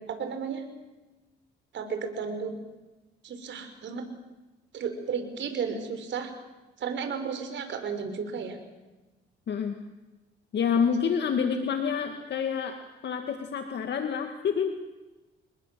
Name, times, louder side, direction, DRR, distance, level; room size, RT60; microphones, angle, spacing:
voice 1, 0.1-0.6 1.7-2.5 3.2-4.0 4.7-6.3 6.8-8.6, right 6 dB, 65° right, 7 dB, 5.3 m, -33 dB
voice 2, 9.5-9.8 10.5-14.8, left 6 dB, 60° left, 6 dB, 2.1 m, -28 dB
27.5 x 21.0 x 7.7 m, 1.1 s
cardioid pair, 90°, 20 cm